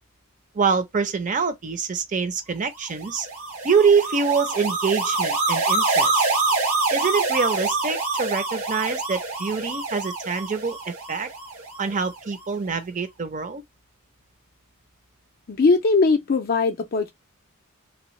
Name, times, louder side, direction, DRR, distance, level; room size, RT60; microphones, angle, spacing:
voice 1, 0.5-3.3 3.6-6.2 6.9-10.8 11.1-11.3 11.8-13.6, right 5 dB, 35° right, 0.6 m, -25 dB
sound 1, 2.9-12.1, right 3 dB, 85° right, 1.3 m, -26 dB
voice 2, 15.5-17.1, left 4 dB, 45° left, 0.4 m, -20 dB
2.9 x 2.0 x 3.1 m
head